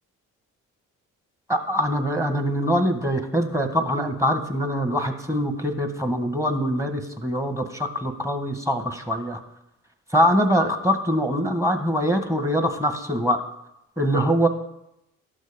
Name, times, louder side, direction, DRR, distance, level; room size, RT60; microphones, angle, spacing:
voice 1, 1.5-9.4 10.1-13.4 14.0-14.5, equal, 5° right, 6 dB, 1.7 m, -23 dB
12.5 x 6.4 x 5.3 m, 0.84 s
hypercardioid pair, 40°, 41 cm